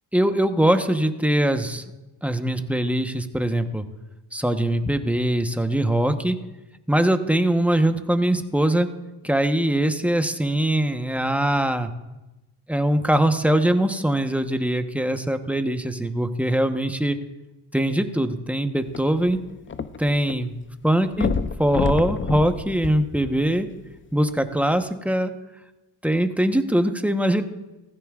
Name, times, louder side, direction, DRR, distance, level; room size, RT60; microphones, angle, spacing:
voice 1, 0.1-1.8 2.2-3.8 4.3-6.4 6.9-8.9 9.2-11.9 12.7-17.2 17.7-19.4 20.0-20.5 20.8-21.3 21.6-23.7 24.1-25.3 26.0-27.5, right 1 dB, 5° right, 7 dB, 1.0 m, -22 dB
sound 1, 18.9-20.4 20.6-20.7 21.1-23.7 24.4-24.5, left 5 dB, 30° left, 0.6 m, -28 dB
15.5 x 15.0 x 2.5 m, 1.0 s
supercardioid pair, 60°, 43 cm